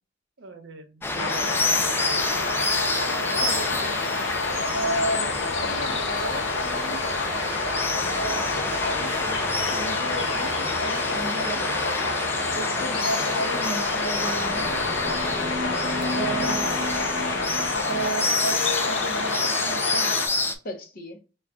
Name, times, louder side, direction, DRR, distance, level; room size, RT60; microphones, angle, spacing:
voice 1, 0.4-2.3 11.3-11.5 12.2-12.4 15.3-15.6, right 3 dB, 70° right, 6 dB, 0.7 m, -45 dB
sound 1, 1.0-20.6, left 2 dB, 10° left, 0.3 m, -29 dB
sound 2, 1.2-20.3, left 3 dB, 85° left, 0.6 m, -28 dB
voice 2, 3.4-3.9 4.7-7.0 8.1-11.7 12.5-14.9 16.1-16.8 17.9-20.2 20.6-21.2, right 1 dB, 50° left, 5 dB, 0.7 m, -34 dB
sound 3, 14.2-18.9, left 2 dB, 10° right, 0.7 m, -35 dB
3.4 x 2.3 x 3.8 m, 0.32 s
head